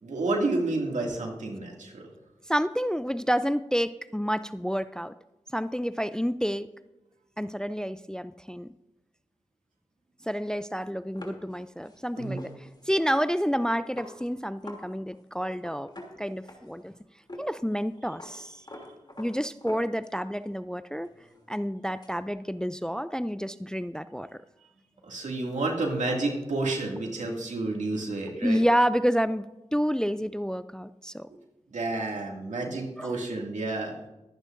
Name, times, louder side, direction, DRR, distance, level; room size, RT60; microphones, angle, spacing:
voice 1, 0.0-2.1 12.2-12.4 25.0-28.6 31.7-34.0, right 2 dB, 80° right, 0 dB, 2.3 m, -30 dB
voice 2, 2.5-5.1 5.5-6.7 7.4-8.7 10.2-12.5 12.9-15.9 16.2-16.9 17.4-18.6 19.2-21.1 21.5-24.3 28.4-31.3 33.0-33.1, equal, 5° left, 14 dB, 0.4 m, -29 dB
sound 1, 11.2-14.9 15.1-15.2 15.5-16.9 17.3-17.5 17.7-20.4 20.7-22.2, left 1 dB, 35° left, 2.8 m, -46 dB
22.5 x 9.2 x 2.6 m, 1.0 s
cardioid pair, 45°, 12 cm